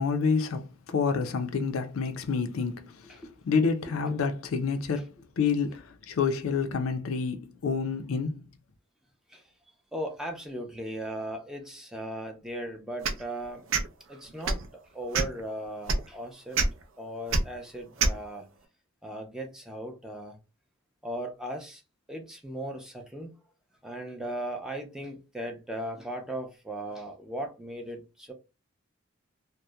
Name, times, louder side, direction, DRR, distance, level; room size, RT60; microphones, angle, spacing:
voice 1, 0.0-8.5, left 5 dB, 90° left, 0.4 m, -28 dB
voice 2, 9.9-13.7 14.1-14.6 14.9-16.6 17.0-18.5 19.0-20.4 21.0-21.8 22.1-23.3 23.8-28.3, right 1 dB, 5° right, 0.4 m, -37 dB
sound 1, 13.0-13.2 13.7-13.9 14.4-14.7 15.1-15.4 15.9-16.0 16.5-16.7 17.3-17.4 18.0-18.2, right 3 dB, 70° right, 0.5 m, -24 dB
2.7 x 2.0 x 2.2 m
head